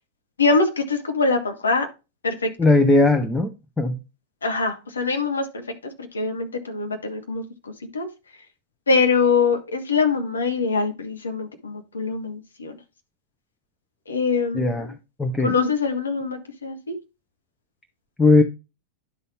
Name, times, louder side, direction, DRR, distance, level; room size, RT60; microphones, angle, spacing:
voice 1, 0.4-1.9 2.2-2.5 4.4-8.1 8.9-12.8 14.1-14.9 15.4-17.0, left 4 dB, 75° left, 5 dB, 1.3 m, -24 dB
voice 2, 2.6-3.5 3.8-4.0 14.5-14.9 15.2-15.5 18.2-18.4, left 2 dB, 10° left, 7 dB, 0.7 m, -18 dB
11.0 x 4.1 x 3.5 m, 0.28 s
figure-of-eight pair, 90°, 0 cm